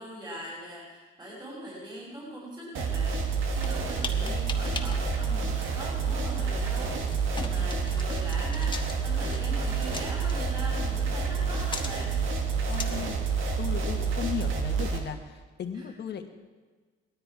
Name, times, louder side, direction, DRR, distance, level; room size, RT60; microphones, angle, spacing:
voice 1, 0.0-8.7 9.0-12.2, right 1 dB, 20° right, -4 dB, 5.4 m, -41 dB
sound 1, 2.7-15.0, right 5 dB, 85° right, 1.9 m, -28 dB
sound 2, 3.6-12.9, left 3 dB, 25° left, 1.5 m, -41 dB
voice 2, 12.7-13.2 13.6-16.3, left 8 dB, 60° left, 6 dB, 1.5 m, -36 dB
18.0 x 13.0 x 4.8 m, 1.4 s
cardioid pair, 90°, 20 cm